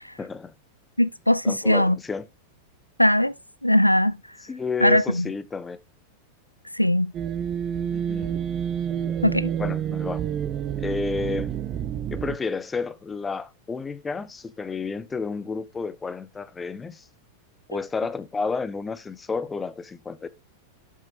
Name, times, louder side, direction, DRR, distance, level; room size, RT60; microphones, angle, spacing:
voice 1, 0.2-0.5 1.4-2.3 4.5-5.8 7.8-8.3 9.6-10.2 10.8-11.5 12.1-17.0 17.7-20.3, left 4 dB, 15° left, 0.6 m, -31 dB
voice 2, 1.0-2.0 3.0-3.3 3.6-4.2 4.8-5.3 6.7-7.1 9.2-9.5, left 1 dB, 90° left, 0.3 m, -20 dB
sound 1, 7.1-12.4, right 9 dB, 30° right, 0.6 m, -28 dB
7.5 x 7.4 x 2.5 m
figure-of-eight pair, 90°, 0 cm